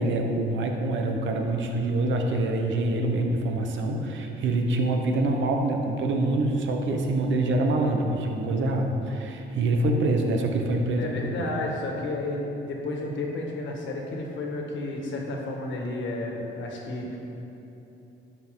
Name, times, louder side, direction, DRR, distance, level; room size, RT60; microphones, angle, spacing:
voice 1, 0.0-11.1 11.4-11.5, right 2 dB, 75° right, 2 dB, 1.0 m, -25 dB
voice 2, 11.0-17.2, left 2 dB, 75° left, 0 dB, 1.6 m, -32 dB
11.5 x 6.1 x 3.8 m, 2.9 s
cardioid pair, 90°, 20 cm